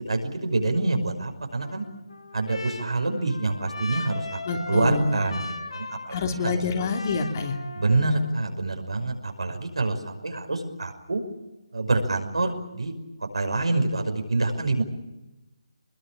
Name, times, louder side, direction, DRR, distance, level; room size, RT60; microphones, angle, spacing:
voice 1, 0.0-1.8 2.3-4.4 4.7-6.5 7.7-11.2 11.7-12.9 13.3-14.8, right 2 dB, 85° right, 5 dB, 5.8 m, -26 dB
Trumpet, 1.6-8.4, left 3 dB, 90° left, 3.7 m, -38 dB
voice 2, 4.5-5.2 6.1-7.6, left 3 dB, 35° left, 4 dB, 3.0 m, -26 dB
24.0 x 21.5 x 8.8 m, 1.0 s
hypercardioid pair, 165°, 3 cm